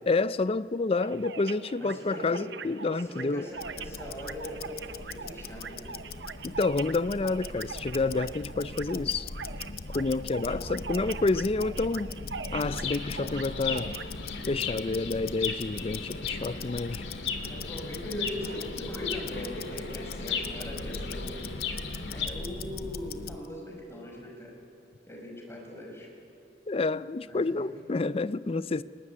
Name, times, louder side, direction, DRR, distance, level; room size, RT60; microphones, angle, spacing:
voice 1, 0.1-3.5 6.4-9.3 9.9-12.1 12.5-13.9 14.5-17.1 26.7-28.8, left 3 dB, 35° left, 0.5 m, -29 dB
sound 1, 0.9-14.0, right 6 dB, 75° right, 0.8 m, -43 dB
voice 2, 1.8-2.4 3.1-4.7 5.1-6.0 10.5-10.7 17.5-21.5 22.1-24.5 25.1-26.1 27.3-27.8, left 1 dB, 15° left, 5.3 m, -40 dB
Tick-tock, 3.5-23.5, left 3 dB, 55° left, 0.9 m, -40 dB
Chirp tweet, 12.6-22.3, left 6 dB, 75° left, 2.2 m, -37 dB
22.0 x 19.5 x 9.8 m
head